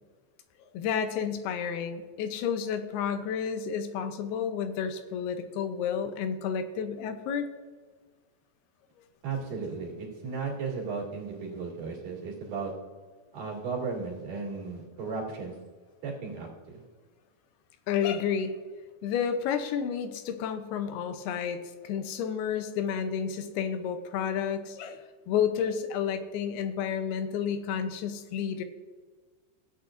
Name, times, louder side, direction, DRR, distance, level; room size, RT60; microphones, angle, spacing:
voice 1, 0.7-7.5 17.9-18.5 19.0-28.6, left 7 dB, 85° left, 9 dB, 2.7 m, -31 dB
voice 2, 9.2-12.7 13.3-15.6 16.0-16.8, right 4 dB, 65° right, -4 dB, 3.8 m, -35 dB
15.5 x 8.3 x 2.5 m, 1.5 s
omnidirectional pair, 4.4 m